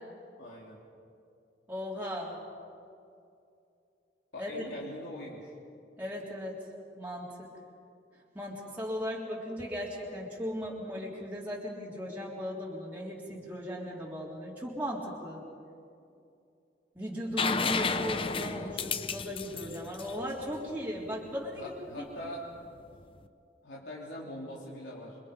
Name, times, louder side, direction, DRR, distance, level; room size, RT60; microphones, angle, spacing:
voice 1, 0.4-0.8 4.3-5.5 21.5-22.4 23.6-25.2, left 1 dB, 75° left, -5 dB, 3.6 m, -42 dB
voice 2, 1.7-2.4 4.4-4.7 6.0-6.7 7.0-7.5 8.3-15.4 17.0-21.7 22.0-22.1, equal, 10° right, -6 dB, 3.7 m, -37 dB
sound 1, 17.4-21.1 22.9-23.0, left 5 dB, 30° left, 0.7 m, -32 dB
28.5 x 25.0 x 5.3 m, 2.5 s
head